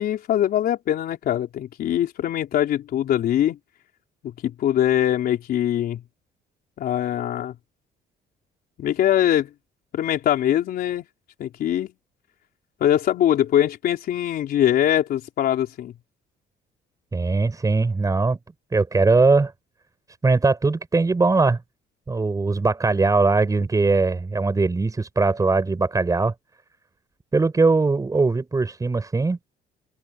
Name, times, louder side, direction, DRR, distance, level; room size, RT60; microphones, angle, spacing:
voice 1, 0.0-3.6 4.4-6.0 6.8-7.6 8.8-9.5 9.9-11.0 11.4-11.9 12.8-15.9, left 11 dB, 65° left, 4.1 m, -22 dB
voice 2, 17.1-18.4 18.7-19.5 20.2-21.6 22.1-26.3 27.3-29.4, right 3 dB, 20° right, 5.3 m, -20 dB
open air
cardioid pair, 110°, 17 cm